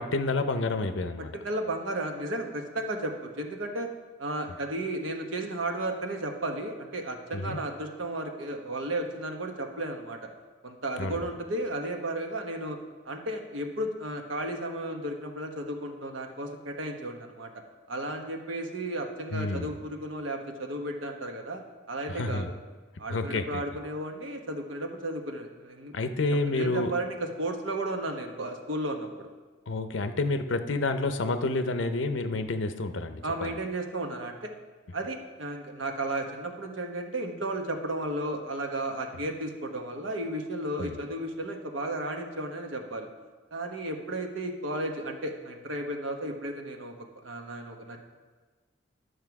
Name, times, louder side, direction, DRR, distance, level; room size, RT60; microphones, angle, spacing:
voice 1, 0.0-1.3 7.3-7.6 11.0-11.3 19.3-19.7 22.1-22.5 23.1-23.6 25.9-26.9 29.7-33.5 40.8-41.0, left 2 dB, 70° left, 9 dB, 0.6 m, -29 dB
voice 2, 1.3-3.9 4.2-10.2 10.6-12.8 13.0-17.5 17.9-21.6 21.9-22.4 23.0-26.2 26.5-29.3 33.2-34.5 34.9-43.1 43.5-46.9 47.2-48.0, right 1 dB, 85° right, 3 dB, 1.1 m, -34 dB
11.0 x 6.5 x 4.7 m, 1.4 s
head